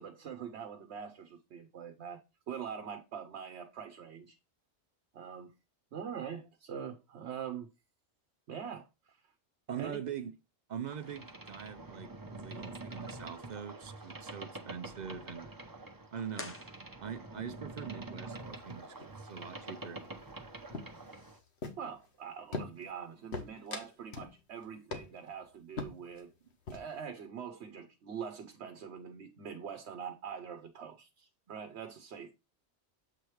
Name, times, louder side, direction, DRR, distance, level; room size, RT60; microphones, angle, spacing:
voice 1, 0.0-2.2 2.5-4.4 5.1-5.5 5.9-7.7 8.5-8.9 9.8-10.0 21.8-26.3 26.7-32.3, right 7 dB, 75° right, 1.0 m, -43 dB
voice 2, 9.7-10.3 10.7-15.5 16.1-16.6 17.0-20.0, right 7 dB, 55° right, 0.5 m, -43 dB
Boat Water vehicle, 10.9-21.4, right 2 dB, 20° right, 0.8 m, -46 dB
sound 1, 16.3-17.5, left 2 dB, 15° left, 0.5 m, -47 dB
sound 2, 18.4-18.7 19.0-19.4 19.6-20.4 20.7-22.1 22.5-23.0 23.3-24.4 24.6-24.7 24.9-25.3 25.8-26.2 26.5-27.0, left 3 dB, 70° left, 1.4 m, -42 dB
7.7 x 3.2 x 4.6 m
omnidirectional pair, 1.1 m